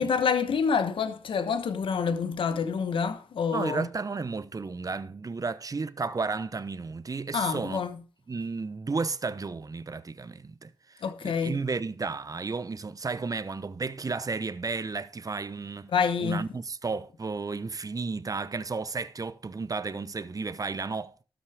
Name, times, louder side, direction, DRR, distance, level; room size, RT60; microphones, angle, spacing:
voice 1, 0.0-3.9 7.3-7.9 11.0-11.6 15.9-16.4, left 6 dB, 80° left, 1.1 m, -27 dB
voice 2, 3.5-7.8 8.3-15.9 16.2-21.2, right 4 dB, 45° right, 1.0 m, -33 dB
12.5 x 6.2 x 4.9 m
cardioid pair, 45°, 9 cm